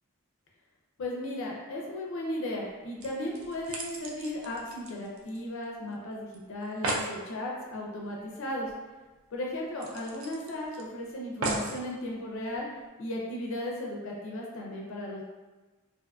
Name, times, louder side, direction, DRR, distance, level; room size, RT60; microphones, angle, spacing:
voice 1, 1.0-8.7 9.3-12.7 13.0-15.2, left 1 dB, 60° left, -2 dB, 0.4 m, -36 dB
sound 1, 2.6-2.7 3.0-5.6 5.9-6.0 6.3-6.4 6.6-7.1 8.7-8.8 9.1-9.2 9.8-10.8 11.4-11.8 12.5-12.6, right 2 dB, 60° right, 0.4 m, -35 dB
2.5 x 2.4 x 2.3 m, 1.2 s
head